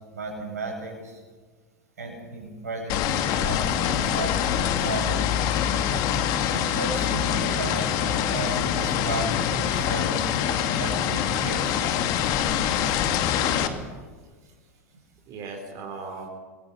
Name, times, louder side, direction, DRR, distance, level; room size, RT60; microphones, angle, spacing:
voice 1, 0.1-1.2 2.0-5.4 6.5-11.6, right 3 dB, 80° right, 1 dB, 7.9 m, -35 dB
sound 1, 2.9-13.7, left 9 dB, 50° left, 2.3 m, -25 dB
voice 2, 3.7-4.2 4.7-4.9 6.4-6.5 11.6-11.7 12.1-13.1 14.0-14.1 14.4-14.5 15.3-16.3, right 4 dB, 45° right, 1 dB, 4.3 m, -42 dB
28.0 x 22.0 x 5.6 m, 1.4 s
hypercardioid pair, 90°, 9 cm